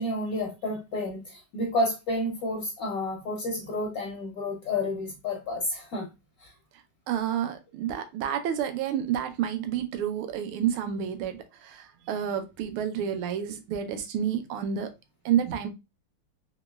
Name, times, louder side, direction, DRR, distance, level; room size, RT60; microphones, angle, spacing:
voice 1, 0.0-6.1 6.4-6.5, left 1 dB, 70° left, 0.8 m, -30 dB
voice 2, 7.1-14.9 15.2-15.7, right 9 dB, 80° right, 1.5 m, -29 dB
3.9 x 2.9 x 2.2 m
omnidirectional pair, 2.4 m